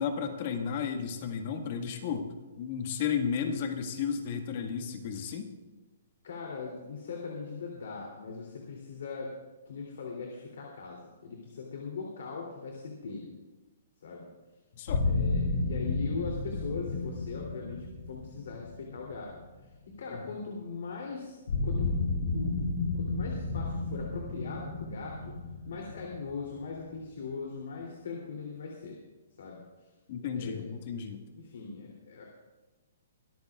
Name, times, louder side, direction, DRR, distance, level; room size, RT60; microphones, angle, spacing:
voice 1, 0.0-2.3 2.6-5.5 14.8-15.1 20.1-20.2 30.1-31.2, left 7 dB, 40° left, 5 dB, 1.8 m, -33 dB
voice 2, 6.2-9.3 9.7-13.3 14.0-14.3 15.0-19.3 19.6-21.4 21.6-21.9 22.3-22.6 22.9-25.3 25.6-29.0 29.4-29.6 30.3-30.8 31.3-32.2, left 4 dB, 70° left, -1 dB, 3.1 m, -40 dB
sound 1, 14.9-19.8 21.5-27.1, left 3 dB, 85° left, 4.6 m, -32 dB
23.5 x 14.0 x 2.5 m, 1.2 s
hypercardioid pair, 165°, 0 cm